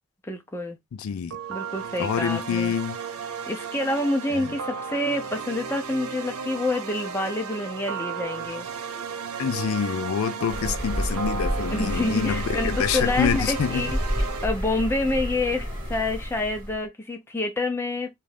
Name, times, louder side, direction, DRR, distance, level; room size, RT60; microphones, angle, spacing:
voice 1, 0.2-0.8 1.5-2.7 3.5-8.7 11.7-13.9 14.4-18.1, left 2 dB, 10° left, 0.5 m, -27 dB
voice 2, 0.9-1.4 2.0-3.0 4.3-4.5 9.4-13.8, left 7 dB, 70° left, 0.3 m, -26 dB
sound 1, 1.3-14.5, right 6 dB, 75° right, 0.5 m, -34 dB
sound 2, 10.5-16.8, equal, 20° right, 1.0 m, -30 dB
2.5 x 2.3 x 3.3 m
head